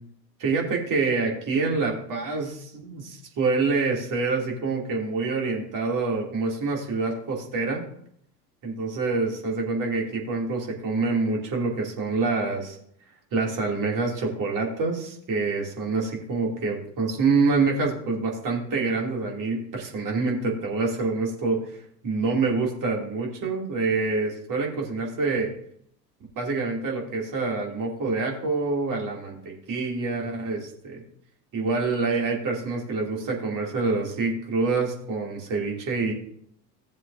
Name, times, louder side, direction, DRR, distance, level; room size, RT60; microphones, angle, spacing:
voice 1, 0.4-7.8 8.6-12.8 13.3-21.8 22.0-25.5 26.3-31.0 31.5-36.1, right 3 dB, 40° right, -1 dB, 2.8 m, -26 dB
15.5 x 7.3 x 2.7 m, 0.68 s
hypercardioid pair, 75°, 48 cm